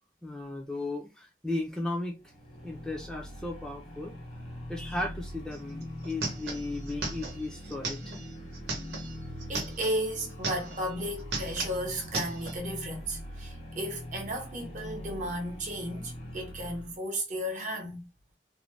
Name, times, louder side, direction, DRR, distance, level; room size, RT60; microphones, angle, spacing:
voice 1, 0.2-2.1 2.6-4.2 4.7-8.7, left 2 dB, 5° left, 0.5 m, -36 dB
sound 1, 2.2-17.0, left 1 dB, 40° left, 0.7 m, -43 dB
sound 2, 5.5-5.6 5.8-10.0 10.3-10.9 11.2-12.6, right 3 dB, 75° right, 0.9 m, -36 dB
voice 2, 9.5-18.1, right 1 dB, 45° right, 0.7 m, -34 dB
2.6 x 2.1 x 3.2 m
head